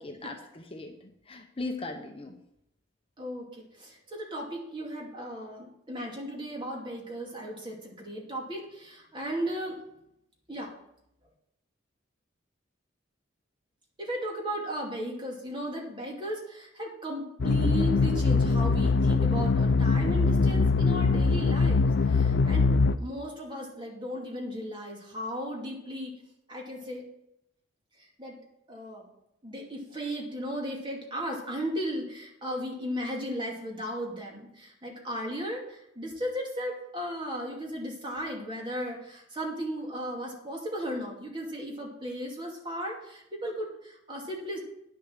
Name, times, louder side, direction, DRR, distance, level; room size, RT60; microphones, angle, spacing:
voice 1, 0.0-2.4, left 2 dB, 30° left, 4 dB, 0.9 m, -39 dB
voice 2, 3.2-9.8 10.5-10.7 14.0-22.7 23.0-26.2 26.5-27.0 28.2-28.4 28.7-29.1 29.4-44.6, equal, 25° right, -1 dB, 2.6 m, -36 dB
sound 1, 17.4-22.9, left 4 dB, 65° left, 0.5 m, -23 dB
10.0 x 7.1 x 6.4 m, 0.80 s
head